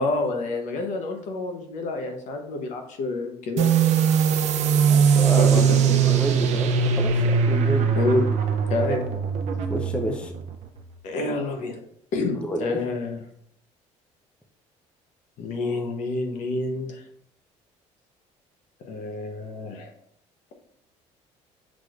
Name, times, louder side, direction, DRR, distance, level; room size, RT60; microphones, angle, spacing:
voice 1, 0.0-3.8 5.4-6.2 7.9-8.3 8.7-9.0 11.0-11.8 12.1-13.2 15.4-17.0 18.8-19.9, left 2 dB, 65° left, 4 dB, 0.9 m, -28 dB
sound 1, 3.6-10.8, right 7 dB, 60° right, 0.6 m, -21 dB
voice 2, 4.9-5.7 6.1-7.9 9.6-10.3 12.4-12.6, equal, 10° left, 4 dB, 0.5 m, -30 dB
6.0 x 3.1 x 2.5 m, 0.67 s
cardioid pair, 110°, 13 cm